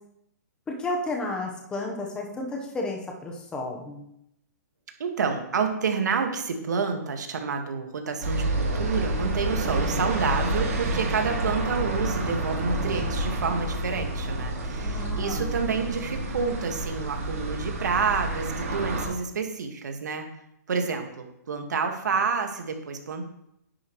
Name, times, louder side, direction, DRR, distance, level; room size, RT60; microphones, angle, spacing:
voice 1, 0.7-4.0 14.8-15.5, left 2 dB, 10° left, 1 dB, 1.1 m, -32 dB
voice 2, 5.0-20.3 20.7-23.3, right 5 dB, 75° right, 4 dB, 1.8 m, -29 dB
sound 1, 8.2-19.1, right 1 dB, 55° right, 3.1 m, -29 dB
10.0 x 8.4 x 3.2 m, 0.78 s
hypercardioid pair, 160°, 9 cm